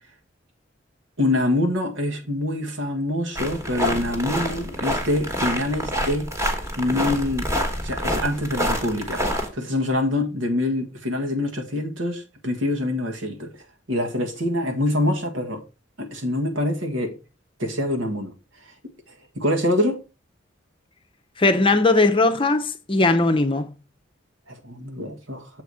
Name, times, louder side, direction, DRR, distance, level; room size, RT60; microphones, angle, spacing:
voice 1, 1.2-6.3 6.8-7.5 7.8-9.2 9.5-13.5 13.9-15.6 16.0-17.2 17.6-18.3 19.3-20.0 24.5-25.5, left 1 dB, 85° right, 1.6 m, -25 dB
sound 1, 3.4-9.5, equal, 15° right, 1.2 m, -27 dB
voice 2, 21.4-23.7, left 2 dB, 25° left, 0.7 m, -19 dB
7.0 x 4.1 x 4.8 m
head